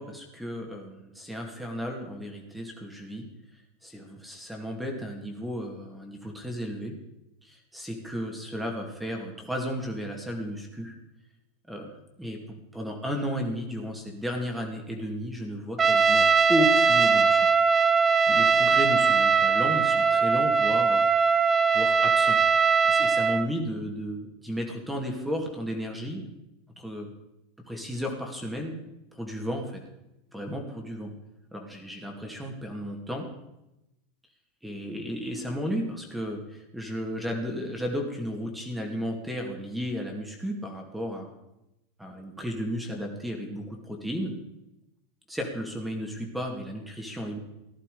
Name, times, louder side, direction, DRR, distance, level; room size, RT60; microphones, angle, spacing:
voice 1, 0.0-3.3 3.8-6.9 7.4-11.0 11.7-17.5 18.3-21.3 21.7-22.4 22.8-26.3 26.8-27.1 27.7-28.7 29.1-29.8 30.3-31.1 31.5-33.3 34.6-41.3 42.0-44.4 45.3-47.4, equal, 5° right, 2 dB, 2.5 m, -33 dB
Trumpet, 15.8-23.5, right 5 dB, 20° right, 0.6 m, -21 dB
15.0 x 11.0 x 5.0 m, 0.90 s
supercardioid pair, 125°, 0 cm